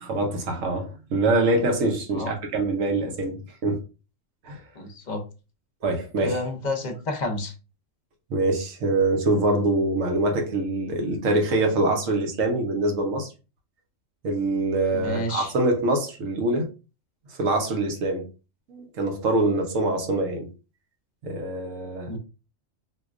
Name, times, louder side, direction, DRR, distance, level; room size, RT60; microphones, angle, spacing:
voice 1, 0.0-3.8 4.4-4.6 5.8-6.4 8.3-13.3 14.2-16.7 17.3-18.2 18.7-20.5 21.2-22.1, right 2 dB, 90° right, 1.1 m, -24 dB
voice 2, 4.8-5.2 6.2-7.5 14.9-15.5 22.1-22.2, left 2 dB, 45° left, 0.6 m, -30 dB
4.4 x 2.2 x 2.4 m
omnidirectional pair, 1.3 m